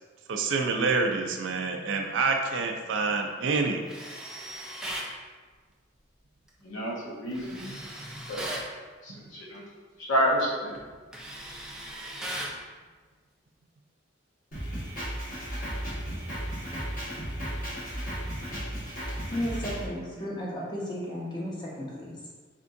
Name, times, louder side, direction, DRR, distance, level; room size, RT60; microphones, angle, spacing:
voice 1, 0.3-3.8, right 4 dB, 70° right, 3 dB, 0.4 m, -27 dB
Tools, 3.9-5.1 7.3-8.7 10.2-10.4 10.7-12.6, right 1 dB, 5° right, 0.4 m, -38 dB
voice 2, 6.6-7.7 8.3-8.6 9.0-9.7 10.0-10.7, equal, 80° left, -4 dB, 1.1 m, -29 dB
Drum kit, 14.5-19.8, equal, 45° left, 1.4 m, -34 dB
voice 3, 19.3-22.2, equal, 20° left, -5 dB, 0.8 m, -34 dB
4.4 x 3.6 x 2.6 m, 1.4 s
head